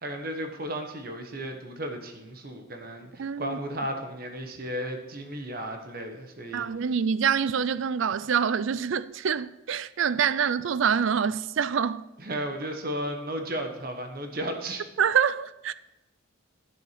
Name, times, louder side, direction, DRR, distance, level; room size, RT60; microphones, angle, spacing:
voice 1, 0.0-6.7 12.2-14.8, right 1 dB, 45° right, 1.1 m, -34 dB
voice 2, 3.2-3.6 6.5-12.1 15.0-15.7, right 7 dB, 65° right, 0.4 m, -26 dB
11.0 x 6.4 x 5.8 m
head